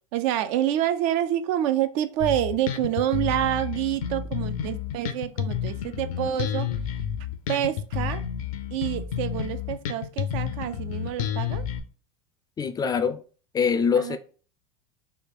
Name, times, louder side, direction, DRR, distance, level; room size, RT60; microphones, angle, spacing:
voice 1, 0.0-6.7 7.5-8.2 8.7-11.7 14.0-14.2, right 12 dB, 65° right, 0.4 m, -27 dB
Bass guitar, 2.2-11.8, left 9 dB, 80° left, 0.6 m, -30 dB
voice 2, 12.6-13.2 13.5-14.2, left 6 dB, 20° left, 0.3 m, -23 dB
3.4 x 2.3 x 3.7 m
supercardioid pair, 105°, 18 cm